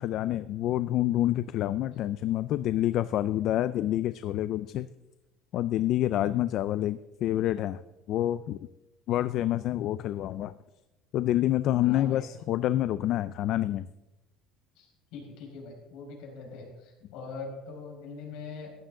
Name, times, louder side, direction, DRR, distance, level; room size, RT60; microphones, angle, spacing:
voice 1, 0.0-4.9 5.5-7.8 8.1-8.6 9.1-10.5 11.1-13.9, left 13 dB, 45° left, 14 dB, 0.3 m, -27 dB
voice 2, 11.8-12.2 14.7-18.7, left 4 dB, 60° left, 0 dB, 4.8 m, -42 dB
15.0 x 11.5 x 3.7 m, 0.98 s
cardioid pair, 170°, 0 cm